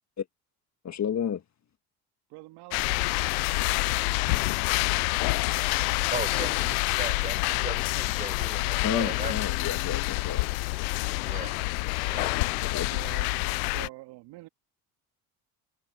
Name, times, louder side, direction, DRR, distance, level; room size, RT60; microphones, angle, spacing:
voice 1, 0.8-1.4 8.8-10.5 12.2-12.9, left 8 dB, 40° left, 1.6 m, -32 dB
voice 2, 2.3-4.5 12.3-13.3 13.6-14.5, right 20 dB, 70° right, 1.9 m, -47 dB
sound 1, 2.7-13.9, left 27 dB, 80° left, 0.5 m, -27 dB
voice 3, 6.1-9.3 11.2-11.6 11.9-12.4, right 3 dB, 20° right, 5.2 m, -37 dB
hypercardioid pair, 70°, 42 cm